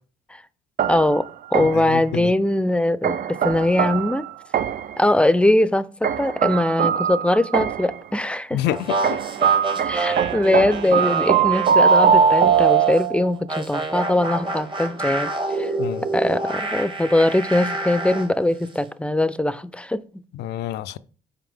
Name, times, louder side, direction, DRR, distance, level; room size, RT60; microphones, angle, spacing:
sound 1, 0.8-2.0 3.0-5.0 6.0-8.0 9.0-13.3, right 7 dB, 50° right, 0.4 m, -21 dB
voice 1, 0.9-4.3 5.0-8.6 9.8-15.7 16.1-20.2, left 1 dB, 5° left, 0.5 m, -21 dB
voice 2, 1.6-2.3 8.5-9.2 15.8-16.0 20.3-21.0, left 12 dB, 65° left, 0.4 m, -28 dB
sound 2, 8.7-13.1 13.5-18.3, right 3 dB, 25° right, 1.0 m, -27 dB
5.7 x 4.7 x 3.5 m
hypercardioid pair, 50°, 19 cm